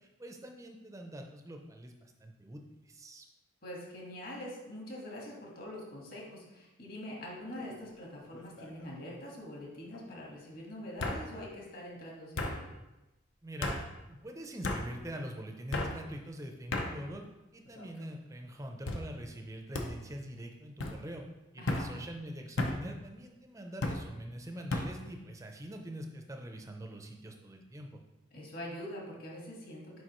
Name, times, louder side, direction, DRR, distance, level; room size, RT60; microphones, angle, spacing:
voice 1, 0.2-3.3 13.4-17.3 17.5-21.2 21.5-27.9, right 1 dB, 15° right, 3 dB, 0.5 m, -44 dB
voice 2, 3.6-12.7 21.6-21.9 28.3-30.0, left 1 dB, 50° left, -3 dB, 1.6 m, -44 dB
sound 1, 7.5-7.9 8.3-8.9 9.9-10.0 11.0-11.2 12.4-12.6 13.6-13.8 14.6-14.8 15.7-15.9 16.7-16.9 17.6-18.1 18.9-19.0 19.7-19.9 20.8-21.0 21.7-21.9 22.6-22.8 23.8-24.0 24.7-24.9, left 2 dB, 75° left, 0.7 m, -34 dB
6.4 x 4.9 x 3.1 m, 1.0 s
head